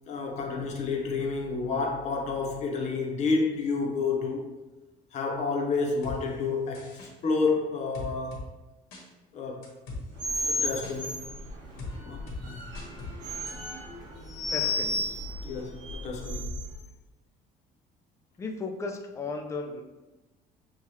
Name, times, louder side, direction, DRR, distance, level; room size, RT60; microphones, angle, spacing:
voice 1, 0.1-4.5 5.1-8.4 9.3-9.6 10.5-11.2 12.0-12.6 15.4-16.5, left 4 dB, 45° left, 0 dB, 0.8 m, -30 dB
sound 1, 6.0-6.2 6.7-7.1 7.9-8.4 8.9-9.0 9.6-10.0 10.3-11.0 11.8-11.9 12.3-12.4 12.7-13.1 13.5-13.6, left 3 dB, 90° left, 1.2 m, -39 dB
sound 2, 10.2-16.8, left 1 dB, 60° right, 1.4 m, -33 dB
voice 2, 14.5-15.1 18.4-19.8, left 3 dB, 20° left, 4 dB, 0.4 m, -35 dB
6.2 x 2.4 x 2.8 m, 1.1 s
cardioid pair, 150°, 16 cm